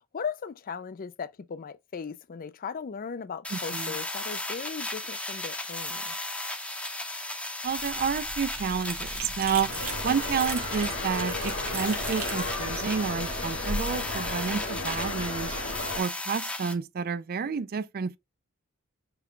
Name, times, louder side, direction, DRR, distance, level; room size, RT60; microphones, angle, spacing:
voice 1, 0.1-6.1, left 6 dB, 40° left, 0.4 m, -37 dB
sound 1, 3.4-16.7, left 2 dB, 5° left, 0.8 m, -35 dB
voice 2, 3.5-4.0 7.6-9.7 10.0-15.5 16.0-18.2, right 6 dB, 45° right, 0.4 m, -30 dB
sound 2, 7.6-13.8, right 4 dB, 70° right, 2.1 m, -40 dB
sound 3, 9.7-16.0, left 2 dB, 75° left, 1.3 m, -34 dB
5.8 x 2.3 x 3.6 m
head